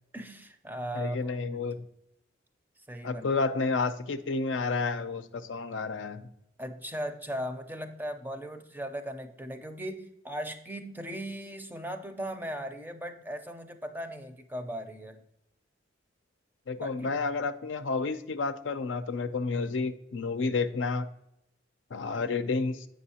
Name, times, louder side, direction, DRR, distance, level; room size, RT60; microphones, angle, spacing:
voice 1, 0.1-1.6 2.9-3.3 6.6-15.2 16.7-17.1, equal, 10° right, 7 dB, 0.5 m, -38 dB
voice 2, 0.9-1.8 3.0-6.3 16.7-21.1 21.9-22.9, left 4 dB, 75° left, 10 dB, 0.5 m, -30 dB
7.6 x 5.4 x 2.8 m, 0.81 s
head